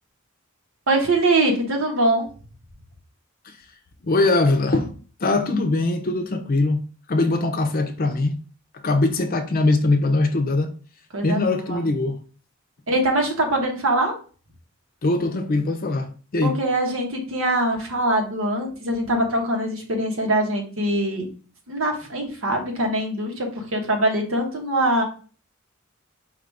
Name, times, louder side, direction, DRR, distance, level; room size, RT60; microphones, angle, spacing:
voice 1, 0.9-2.3 11.1-11.9 12.9-14.1 16.4-21.2 21.7-25.0, right 1 dB, 80° right, 1.2 m, -23 dB
voice 2, 4.0-6.8 7.1-8.4 8.8-10.7 11.2-12.2 15.0-16.6, left 2 dB, 45° left, 0.5 m, -22 dB
4.8 x 2.5 x 3.4 m
head